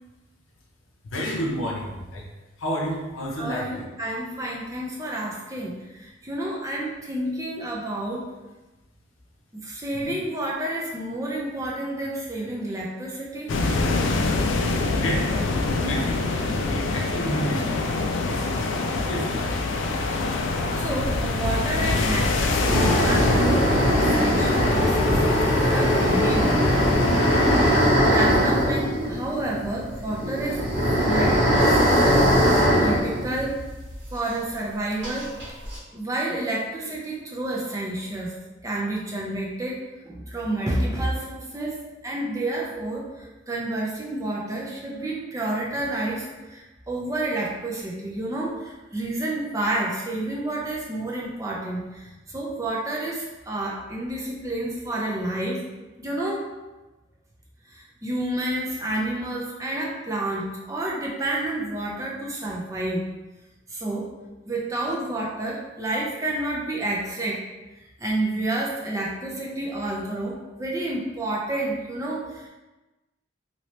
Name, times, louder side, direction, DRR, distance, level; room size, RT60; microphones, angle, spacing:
voice 1, 1.1-2.2 2.6-3.9 10.0-10.1 14.9-15.4 15.8-16.3 16.7-17.9 18.2-18.6 19.1-19.6, equal, 90° left, -1 dB, 0.7 m, -30 dB
voice 2, 3.4-8.3 9.5-13.6 19.7-19.8 20.8-26.7 27.4-30.6 30.9-32.3 32.8-33.6 34.1-35.3 35.9-38.3 38.6-55.6 56.0-56.5 57.7-63.0 63.7-64.1 64.5-67.4 68.0-72.5, right 1 dB, 15° right, -3 dB, 0.5 m, -30 dB
sound 1, 13.5-27.8, left 3 dB, 70° left, 0.3 m, -25 dB
sound 2, 22.7-34.1 34.4-34.5 35.0-35.8, equal, 70° right, 1.3 m, -21 dB
2.8 x 2.8 x 3.1 m, 1.1 s
head